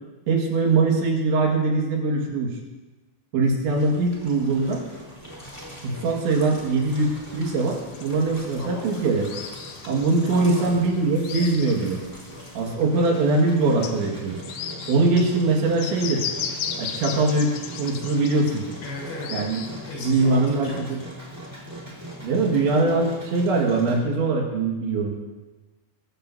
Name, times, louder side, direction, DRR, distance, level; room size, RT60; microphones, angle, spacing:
voice 1, 0.3-2.5 3.3-4.8 5.8-9.2 9.9-12.0 12.6-14.4 14.9-16.2 16.8-17.5 17.8-18.7 19.3-19.6 20.0-21.0 22.2-25.1, right 3 dB, 70° right, 0 dB, 4.0 m, -22 dB
sound 1, 3.6-12.8, equal, 10° left, 1.7 m, -45 dB
Engine, 4.6-24.0, right 1 dB, 5° right, 3.0 m, -41 dB
sound 2, 7.4-12.8 13.2-13.3 13.7-20.3, left 8 dB, 80° left, 2.3 m, -36 dB
voice 2, 8.6-8.9 10.3-10.8 18.8-19.3 19.5-20.8, left 2 dB, 60° left, -4 dB, 6.2 m, -36 dB
23.0 x 14.5 x 2.7 m, 1.2 s
omnidirectional pair, 5.8 m